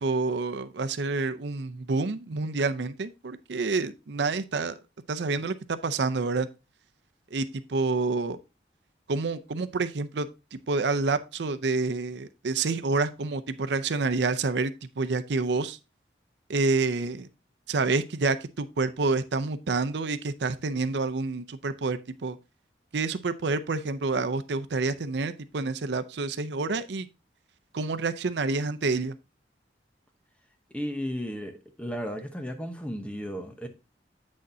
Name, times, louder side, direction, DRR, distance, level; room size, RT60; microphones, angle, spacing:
voice 1, 0.0-4.7 5.1-6.5 7.3-8.4 9.1-15.8 16.5-17.3 17.7-22.4 22.9-27.1 27.7-29.2, right 3 dB, 75° right, 0.6 m, -28 dB
voice 2, 30.7-33.7, equal, 5° left, 0.9 m, -34 dB
8.6 x 6.4 x 2.7 m
head